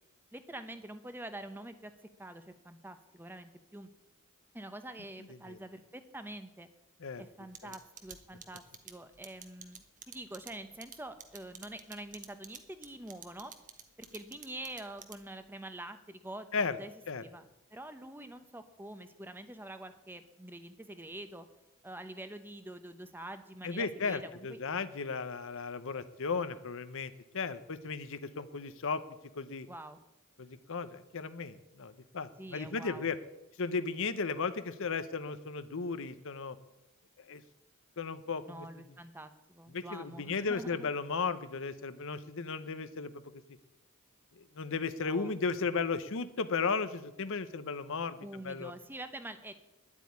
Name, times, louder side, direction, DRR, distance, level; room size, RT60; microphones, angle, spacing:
voice 1, 0.3-1.9 2.2-3.9 4.5-6.7 7.2-13.5 14.1-16.9 17.2-17.4 17.7-21.5 21.8-24.6 29.7-30.0 32.4-33.1 38.4-40.9 44.9-45.3 48.2-49.5, right 1 dB, 10° right, 9 dB, 0.9 m, -46 dB
sound 1, 7.5-15.4, right 8 dB, 35° right, 1.3 m, -49 dB
voice 2, 23.6-29.0 29.4-29.7 30.4-33.2 33.6-36.6 37.2-37.4 38.0-38.7 39.7-43.4 44.4-48.2 48.4-48.7, left 4 dB, 65° left, 12 dB, 0.9 m, -35 dB
10.5 x 8.4 x 9.5 m, 0.94 s
head